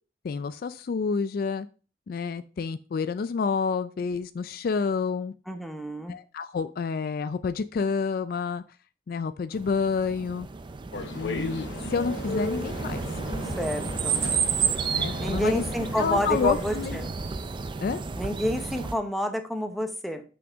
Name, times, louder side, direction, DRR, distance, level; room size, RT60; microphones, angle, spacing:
voice 1, 0.2-1.7 2.1-5.3 6.1-8.6 9.1-10.5 11.1-13.0 14.9-15.7 16.0-17.0 17.8-18.0, left 5 dB, 55° left, 12 dB, 0.3 m, -29 dB
voice 2, 5.5-6.2 13.6-14.2 15.2-17.1 18.2-20.2, equal, ahead, 5 dB, 0.8 m, -29 dB
sound 1, 9.5-19.0, right 5 dB, 25° right, 0.4 m, -31 dB
sound 2, 10.9-17.1, left 2 dB, 80° left, 0.8 m, -37 dB
6.4 x 5.7 x 3.5 m, 0.36 s
head